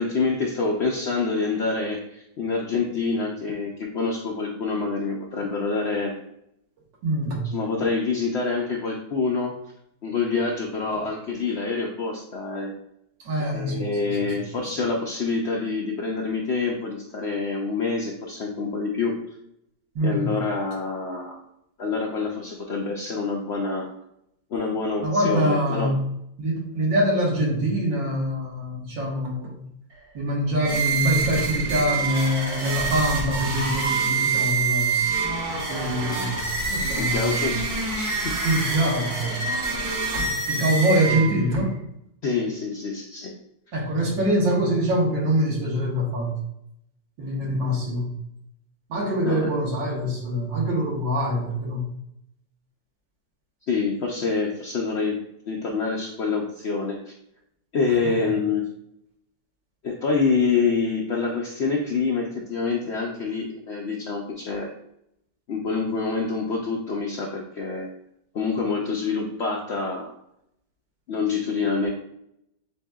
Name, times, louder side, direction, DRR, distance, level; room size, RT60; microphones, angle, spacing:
voice 1, 0.0-6.2 7.5-9.5 10.0-12.7 13.4-19.1 20.0-21.4 21.8-23.9 24.5-25.9 37.0-38.4 42.2-43.3 49.2-49.5 53.7-55.2 55.5-57.1 57.7-58.6 59.8-64.7 65.5-67.9 68.3-70.1 71.1-71.9, left 4 dB, 80° left, -1 dB, 0.6 m, -26 dB
voice 2, 7.0-7.5 13.2-14.3 20.0-20.4 25.0-26.1 26.4-29.7 30.1-35.0 35.7-37.5 38.4-39.8 40.1-41.7 43.7-46.4 47.2-48.1 48.9-51.9 58.0-58.2, equal, 90° right, -2 dB, 1.9 m, -24 dB
sound 1, 30.6-41.6, right 4 dB, 50° right, 1.9 m, -26 dB
8.2 x 2.8 x 2.3 m, 0.78 s
omnidirectional pair, 1.9 m